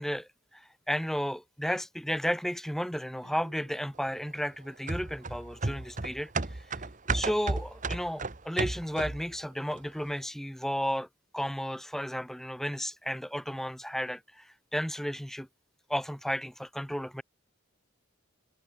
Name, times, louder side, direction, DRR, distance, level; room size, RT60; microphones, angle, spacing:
voice 1, 0.0-6.6 7.1-11.1 11.3-15.5 15.9-17.2, equal, ahead, 1.5 m, -33 dB
sound 1, 3.2-4.3, right 1 dB, 60° right, 7.1 m, -58 dB
sound 2, 4.9-9.3 9.7-9.8, right 3 dB, 35° right, 1.1 m, -33 dB
head